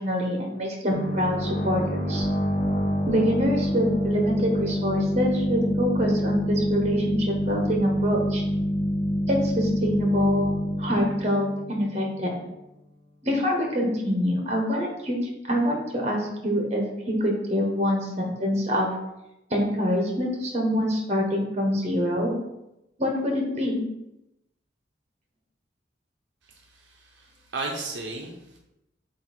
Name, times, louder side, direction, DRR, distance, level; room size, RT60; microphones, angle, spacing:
voice 1, 0.0-2.2 3.0-8.4 9.3-12.4 13.2-15.2 15.5-18.9 19.5-22.3 23.0-23.8, equal, 40° right, 1 dB, 1.3 m, -25 dB
sound 1, 0.9-12.4, equal, 40° left, 0.9 m, -26 dB
voice 2, 26.4-28.6, right 3 dB, 75° right, 0 dB, 0.8 m, -35 dB
7.5 x 2.8 x 4.4 m, 0.89 s
head